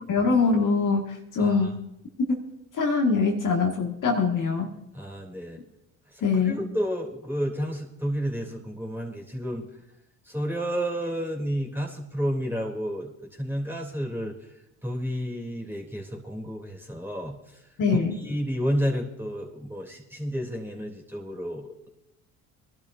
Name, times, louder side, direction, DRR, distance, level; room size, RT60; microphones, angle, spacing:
voice 1, 0.1-1.8 2.8-4.7 6.2-6.6 17.8-18.2, left 4 dB, 45° left, 1 dB, 2.1 m, -23 dB
voice 2, 1.4-1.7 4.9-5.6 6.3-9.6 10.3-13.1 13.4-14.3 14.8-17.4 17.9-21.9, equal, 5° right, -1 dB, 3.3 m, -31 dB
22.5 x 12.0 x 2.7 m, 0.86 s
hypercardioid pair, 65°, 41 cm